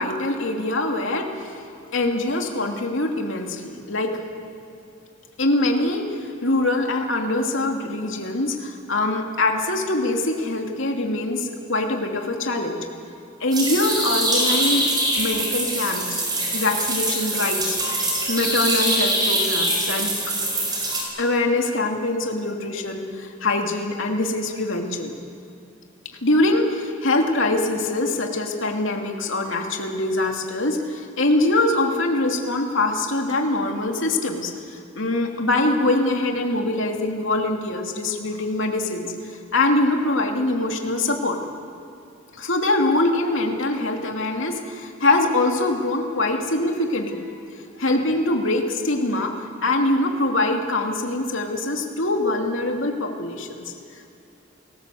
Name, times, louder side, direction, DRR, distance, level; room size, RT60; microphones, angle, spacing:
voice 1, 0.0-1.6 1.9-4.2 5.4-12.9 13.4-16.2 16.5-17.8 18.3-20.1 21.2-25.1 26.2-41.4 42.3-47.4 47.8-53.7, left 2 dB, 65° left, 2 dB, 2.8 m, -23 dB
sound 1, 13.5-21.0, right 1 dB, 20° right, 4.8 m, -23 dB
28.0 x 19.5 x 7.8 m, 2.6 s
head